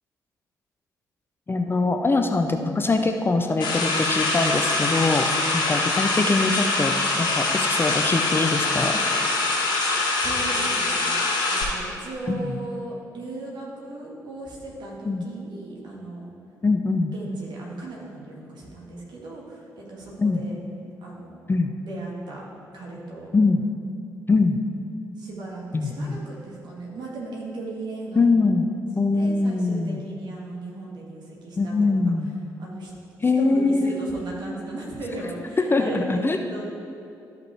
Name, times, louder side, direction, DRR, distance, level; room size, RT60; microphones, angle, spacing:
voice 1, 1.5-5.3 5.5-9.0 12.3-12.5 15.1-15.3 16.6-17.1 20.2-20.4 21.5-21.7 23.3-23.6 24.3-24.6 25.7-26.2 28.2-28.7 29.0-30.0 31.6-32.3 33.2-34.1 35.6-36.4, left 3 dB, 25° left, 5 dB, 0.5 m, -22 dB
sound 1, 3.6-11.6, left 3 dB, 55° left, 1.8 m, -24 dB
voice 2, 10.2-16.3 17.1-20.5 21.0-21.5 21.8-22.4 22.7-23.3 25.2-28.5 29.1-32.1 32.6-32.9 33.2-36.6, right 2 dB, 50° right, -4 dB, 2.0 m, -37 dB
13.0 x 5.7 x 3.4 m, 2.6 s
figure-of-eight pair, 40°, 9 cm